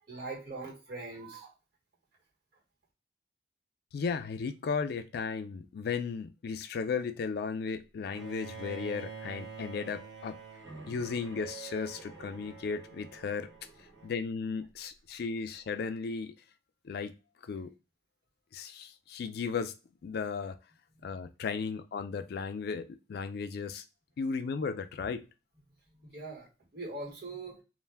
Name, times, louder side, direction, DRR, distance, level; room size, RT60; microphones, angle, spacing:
voice 1, 0.1-1.5 26.0-26.5 26.7-27.6, right 3 dB, 65° right, 1.3 m, -41 dB
voice 2, 3.9-10.4 10.9-13.5 14.0-16.3 16.8-17.1 17.5-17.7 18.5-19.7 20.0-20.6 21.0-23.8 24.2-25.2, left 5 dB, 60° left, 0.3 m, -35 dB
Bowed string instrument, 8.1-14.2, right 5 dB, 85° right, 0.8 m, -47 dB
2.5 x 2.1 x 3.3 m
head